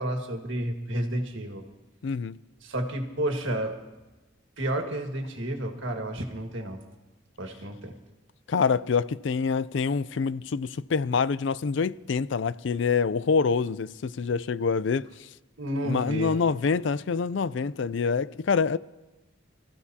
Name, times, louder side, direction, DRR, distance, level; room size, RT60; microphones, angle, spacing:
voice 1, 0.0-1.6 2.6-3.8 4.6-6.8 7.4-8.0 15.6-16.4, right 1 dB, 75° right, 1.8 m, -31 dB
voice 2, 2.0-2.4 8.5-15.1 15.8-18.8, left 5 dB, 65° left, 0.4 m, -26 dB
26.0 x 14.5 x 2.8 m
head